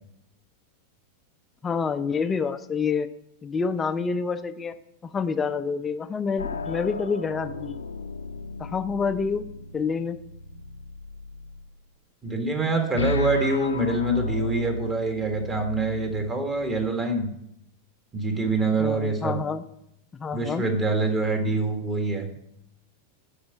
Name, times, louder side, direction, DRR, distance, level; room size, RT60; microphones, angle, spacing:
voice 1, 1.6-3.1 3.4-4.7 5.0-7.8 8.6-9.5 9.7-10.2 18.8-19.6 20.1-20.6, left 5 dB, 20° left, 10 dB, 0.5 m, -27 dB
sound 1, 6.4-11.7 13.0-16.9, left 2 dB, 75° left, 0.6 m, -34 dB
voice 2, 12.2-17.3 18.1-19.4 20.3-22.3, right 2 dB, 20° right, 4 dB, 1.7 m, -25 dB
10.5 x 4.3 x 7.6 m, 0.77 s
figure-of-eight pair, 90°, 0 cm